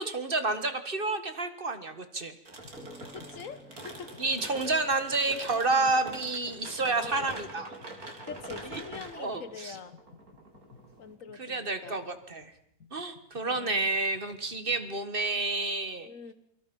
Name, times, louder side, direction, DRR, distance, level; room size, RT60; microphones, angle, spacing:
voice 1, 0.0-2.4 4.2-7.7 8.6-8.7 9.1-9.7 11.4-12.5 12.9-16.1, right 3 dB, 35° right, 10 dB, 1.8 m, -30 dB
sound 1, 2.5-11.1, right 2 dB, 75° right, 4.0 m, -45 dB
sound 2, 2.6-14.9, left 6 dB, 85° left, 3.6 m, -56 dB
sound 3, 2.8-6.2, equal, ahead, 2.8 m, -54 dB
voice 2, 3.1-4.1 5.5-6.0 7.0-7.4 8.2-9.9 11.0-12.0 13.4-13.9 16.0-16.3, left 6 dB, 60° left, 13 dB, 1.7 m, -44 dB
28.5 x 24.0 x 5.5 m, 0.71 s
omnidirectional pair, 1.6 m